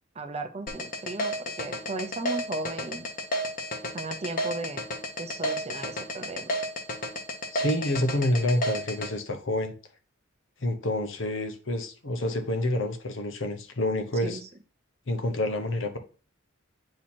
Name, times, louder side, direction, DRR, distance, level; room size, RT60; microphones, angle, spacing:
voice 1, 0.1-3.1 3.9-4.9 5.2-6.5 14.2-14.4, right 2 dB, 30° right, 0.7 m, -36 dB
sound 1, 0.7-9.1, equal, 45° left, 1.0 m, -31 dB
voice 2, 7.5-9.7 10.6-14.4 15.1-16.0, left 1 dB, 65° left, 0.9 m, -28 dB
8.6 x 3.0 x 4.3 m
head